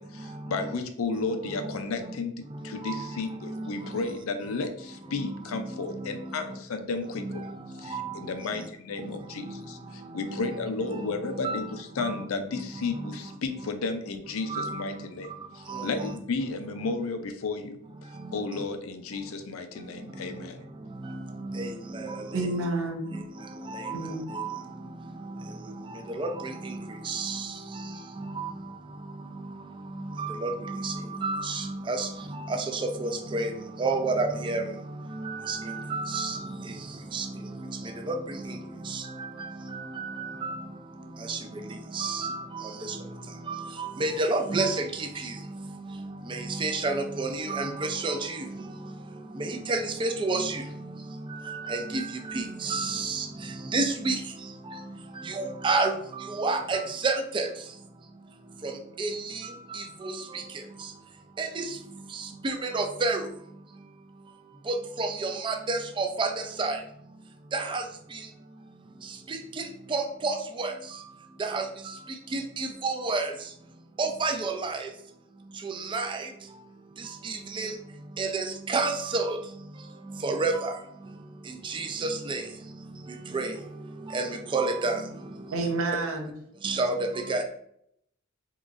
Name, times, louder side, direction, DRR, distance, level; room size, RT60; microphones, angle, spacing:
voice 1, 0.0-7.4 7.8-20.6, left 3 dB, 85° left, 7 dB, 0.5 m, -33 dB
voice 2, 1.4-1.7 2.5-3.9 5.2-6.4 7.2-8.2 9.0-9.1 9.4-9.6 10.0-10.6 10.8-12.2 12.7-13.1 14.5-15.1 15.7-16.2 21.0-22.7 23.1-23.2 23.6-24.6 25.2-28.5 29.4-29.6 29.9-33.5 33.8-34.7 35.0-36.8 37.1-40.7 41.2-48.9 49.3-50.7 51.2-55.0 55.2-57.5 58.6-60.4 61.4-61.8 62.1-63.3 64.7-66.8 67.5-67.8 68.1-68.2 69.3-70.7 71.4-71.9 72.3-73.3 74.0-74.9 75.6-76.3 77.0-77.7 78.2-79.4 80.1-80.8 81.6-82.4 83.3-83.5 84.1-85.3 86.6-87.4, right 3 dB, 25° right, 6 dB, 0.3 m, -31 dB
voice 3, 22.3-23.1 23.9-24.3 85.5-86.3, right 2 dB, 85° right, 3 dB, 0.7 m, -29 dB
3.7 x 3.0 x 2.4 m, 0.72 s
head